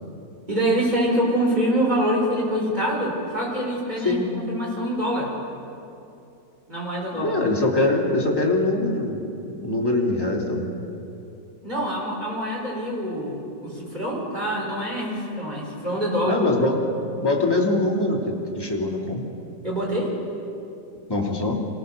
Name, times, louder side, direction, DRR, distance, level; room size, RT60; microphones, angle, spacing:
voice 1, 0.5-5.3 6.7-7.3 11.6-16.4 19.6-20.1, equal, 25° right, -3 dB, 5.5 m, -25 dB
voice 2, 7.1-9.3 9.6-10.7 16.2-19.2 21.1-21.6, left 2 dB, 15° left, -2 dB, 3.0 m, -23 dB
26.5 x 17.5 x 6.8 m, 2.7 s
omnidirectional pair, 1.9 m